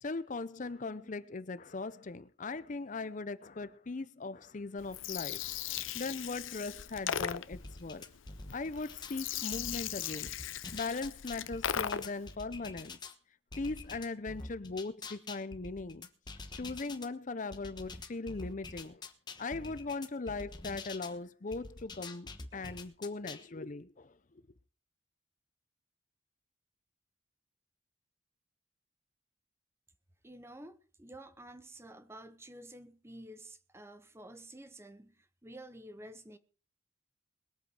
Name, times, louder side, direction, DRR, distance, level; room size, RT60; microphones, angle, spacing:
voice 1, 0.0-5.4 5.9-8.1 8.5-10.3 10.7-13.0 13.6-16.1 16.5-19.0 19.4-24.1, left 3 dB, 40° left, 0.6 m, -39 dB
Gurgling, 4.8-12.3, left 9 dB, 85° left, 0.7 m, -38 dB
sound 1, 7.5-9.2 9.5-13.1 13.5-17.1 17.5-21.1 21.5-23.4, left 3 dB, 20° left, 1.2 m, -46 dB
voice 2, 30.2-36.4, right 1 dB, 15° right, 0.8 m, -50 dB
21.0 x 8.3 x 4.8 m
head